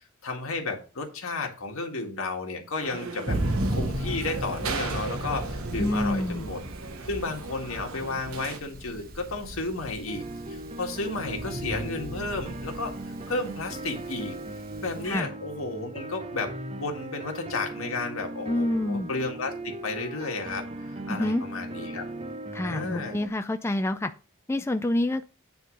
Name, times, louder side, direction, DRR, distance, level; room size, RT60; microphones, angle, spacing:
voice 1, 0.2-3.4 3.7-6.6 7.1-10.2 10.5-13.0 13.3-14.4 14.8-22.0 22.6-23.2, left 3 dB, 75° left, 2 dB, 1.9 m, -33 dB
sound 1, 2.8-8.6, right 4 dB, 85° right, 1.0 m, -38 dB
Thunder, 3.3-15.2, right 1 dB, 45° right, 1.1 m, -35 dB
voice 2, 5.8-6.4 15.0-15.3 18.5-19.1 21.1-21.4 22.5-24.1 24.5-25.2, left 1 dB, 10° left, 8 dB, 0.3 m, -27 dB
sound 2, 10.1-23.3, right 2 dB, 30° right, 0.6 m, -38 dB
9.3 x 3.7 x 6.3 m, 0.36 s
head